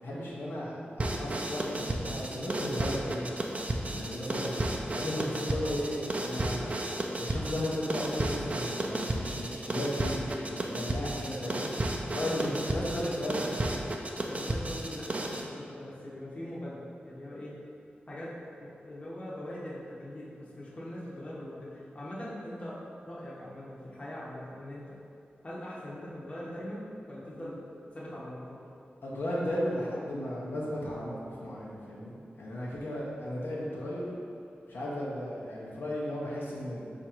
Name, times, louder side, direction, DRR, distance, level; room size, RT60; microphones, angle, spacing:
voice 1, 0.0-3.3 3.8-4.6 4.9-6.8 7.2-11.7 12.1-13.5 29.0-34.1 34.7-36.9, left 1 dB, 75° left, -6 dB, 0.8 m, -35 dB
sound 1, 1.0-15.5, right 1 dB, 35° right, 0.4 m, -33 dB
voice 2, 12.2-13.1 13.4-13.6 14.3-17.6 18.1-18.3 18.6-22.8 23.0-25.0 25.4-27.6 27.9-28.6, left 1 dB, 30° left, -7 dB, 0.9 m, -41 dB
4.4 x 2.5 x 4.3 m, 2.4 s
wide cardioid pair, 100°, 4 cm